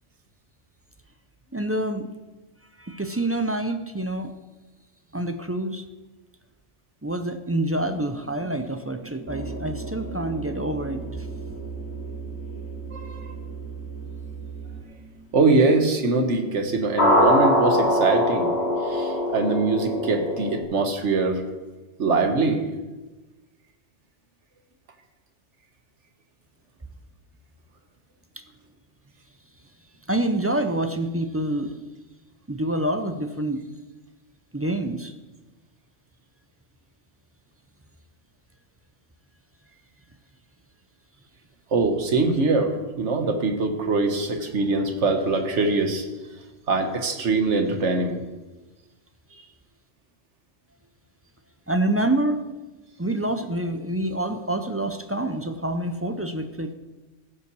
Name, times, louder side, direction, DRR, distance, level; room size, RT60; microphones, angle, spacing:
voice 1, 1.5-2.1 2.8-4.3 5.1-5.8 7.0-11.0 30.1-31.8 32.5-33.6 34.5-35.1 51.7-52.4 53.0-56.7, right 1 dB, 20° right, 7 dB, 0.4 m, -27 dB
sound 1, 7.8-11.7 13.1-13.2 17.0-20.6, left 1 dB, 60° left, 1.9 m, -23 dB
sound 2, 9.3-14.8, right 4 dB, 15° left, 1.1 m, -36 dB
voice 2, 12.9-13.2 15.3-18.5 18.9-21.4 22.0-22.7 41.7-46.0 46.7-48.2, right 3 dB, 75° right, 5 dB, 1.6 m, -23 dB
15.0 x 5.8 x 6.2 m, 1.2 s
omnidirectional pair, 1.2 m